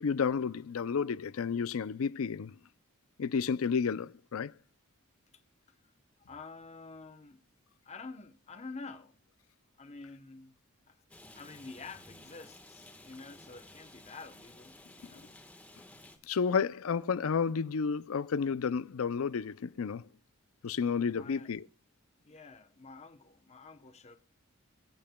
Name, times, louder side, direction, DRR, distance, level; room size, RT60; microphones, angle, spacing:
voice 1, 0.0-2.6 3.2-4.5 16.3-20.0 20.6-21.7, left 6 dB, 70° left, 0.5 m, -31 dB
voice 2, 6.3-7.4 7.8-9.2 9.8-10.6 10.9-11.0 11.3-15.3 21.1-21.5 22.2-24.2, left 4 dB, 30° left, 0.9 m, -48 dB
Rain, 11.1-16.2, left 1 dB, 5° left, 1.3 m, -54 dB
25.0 x 8.6 x 2.3 m
head